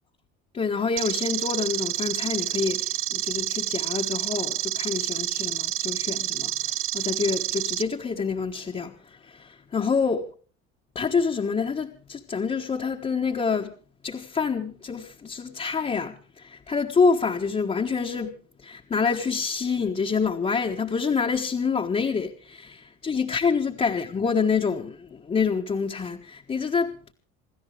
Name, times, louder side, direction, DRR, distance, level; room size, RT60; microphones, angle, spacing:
voice 1, 0.5-10.2 10.9-13.7 14.0-18.3 18.6-27.1, left 5 dB, 20° left, 1.4 m, -27 dB
sound 1, 1.0-7.8, right 14 dB, 45° right, 0.7 m, -29 dB
28.0 x 13.5 x 3.3 m
cardioid pair, 135°, 29 cm